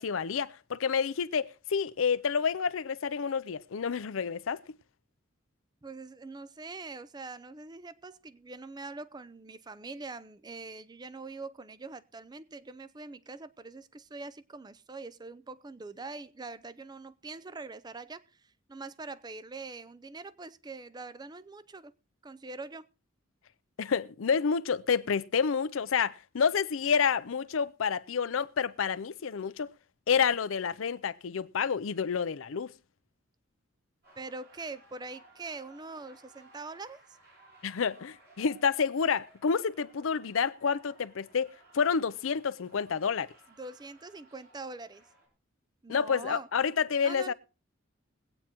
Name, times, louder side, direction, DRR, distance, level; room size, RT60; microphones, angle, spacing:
voice 1, 0.0-4.6 23.8-29.7 30.1-32.7 37.6-43.3 45.9-47.3, left 6 dB, 85° left, 0.5 m, -29 dB
voice 2, 5.8-21.9 22.2-22.9 34.2-37.2 43.6-45.0 45.8-46.5 47.0-47.3, right 3 dB, 20° right, 0.5 m, -43 dB
sound 1, 34.0-45.3, right 1 dB, 50° right, 6.3 m, -60 dB
22.5 x 8.8 x 3.0 m
head